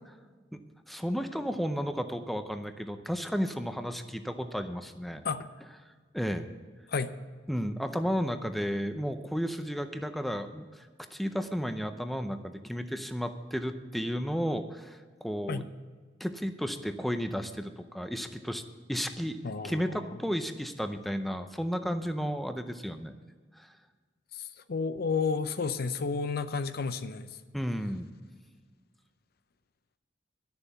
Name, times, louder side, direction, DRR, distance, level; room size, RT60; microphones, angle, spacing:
voice 1, 0.9-5.2 6.1-6.5 7.5-15.6 16.2-18.6 18.9-19.4 19.6-23.1 23.6-23.7 27.5-28.1, equal, ahead, 7 dB, 0.6 m, -33 dB
voice 2, 19.4-20.2 24.3-27.3, left 4 dB, 55° left, 11 dB, 0.6 m, -32 dB
11.5 x 7.0 x 7.9 m, 1.5 s
head